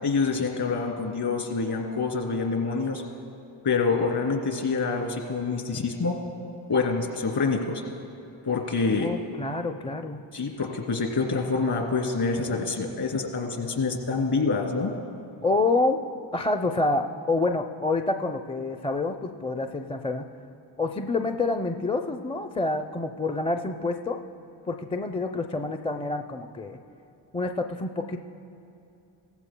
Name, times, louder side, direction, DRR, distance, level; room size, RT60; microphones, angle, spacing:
voice 1, 0.0-3.0 3.6-6.1 6.7-7.8 8.4-9.1 10.3-14.9, left 4 dB, 50° left, 2 dB, 2.8 m, -26 dB
voice 2, 9.0-10.2 15.4-16.0 16.3-20.2 20.8-24.2 24.7-26.8 27.3-28.2, left 3 dB, 10° left, 5 dB, 0.5 m, -27 dB
17.5 x 15.0 x 2.2 m, 2.8 s
supercardioid pair, 55°, 50 cm